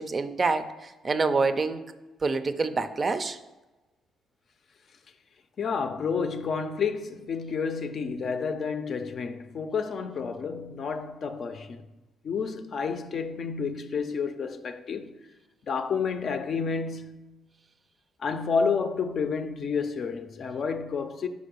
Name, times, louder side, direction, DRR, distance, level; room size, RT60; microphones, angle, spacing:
voice 1, 0.0-1.8 2.2-3.4, right 4 dB, 35° right, 0.4 m, -27 dB
voice 2, 5.6-11.8 12.2-15.1 15.6-17.4 18.2-21.3, left 5 dB, 55° left, 0.5 m, -30 dB
5.2 x 4.7 x 5.2 m
cardioid pair, 90°, 0 cm